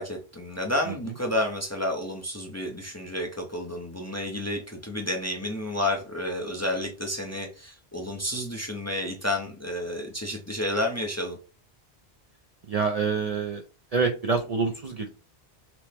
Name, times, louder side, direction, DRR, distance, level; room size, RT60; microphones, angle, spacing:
voice 1, 0.0-11.4, left 1 dB, 20° left, 2 dB, 0.5 m, -30 dB
voice 2, 12.7-13.6 13.9-15.1, right 5 dB, 50° right, 2 dB, 0.5 m, -26 dB
6.0 x 2.1 x 3.3 m, 0.35 s
omnidirectional pair, 1.1 m